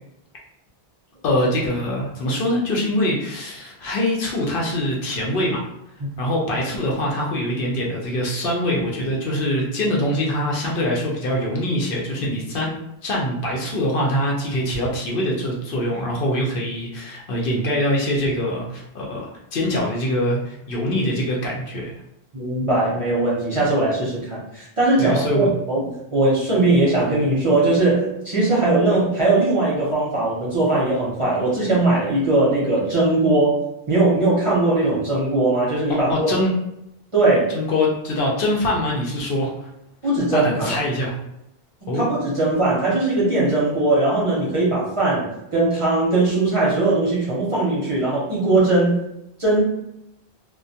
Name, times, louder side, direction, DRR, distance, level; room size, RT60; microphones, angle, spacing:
voice 1, 1.2-5.6 6.2-12.7 13.0-21.9 25.0-25.5 35.9-36.5 37.5-39.7 40.3-41.2 41.9-42.1, left 1 dB, 65° left, -3 dB, 0.7 m, -23 dB
voice 2, 22.3-33.6 33.9-36.3 37.1-37.5 40.0-40.8 41.9-48.9 49.4-49.6, right 2 dB, 35° right, -7 dB, 0.7 m, -20 dB
2.2 x 2.1 x 2.6 m, 0.82 s
omnidirectional pair, 1.0 m